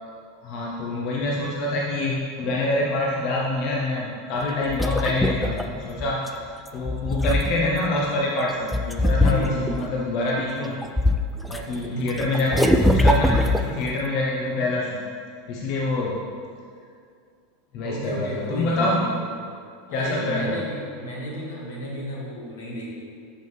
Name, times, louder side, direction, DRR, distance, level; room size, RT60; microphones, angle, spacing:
voice 1, 0.4-6.4 6.7-10.8 11.5-16.2 17.7-19.1 19.9-20.6, left 2 dB, 55° left, -3 dB, 0.8 m, -26 dB
sound 1, 4.4-6.3 6.7-7.9 8.7-9.8 10.4-11.6 11.8-14.0, left 1 dB, ahead, 0.4 m, -22 dB
voice 2, 9.1-9.8 11.9-12.3 17.8-19.3 19.9-22.9, equal, 85° left, -4 dB, 1.7 m, -32 dB
7.4 x 5.5 x 3.2 m, 2.3 s
hypercardioid pair, 100°, 0 cm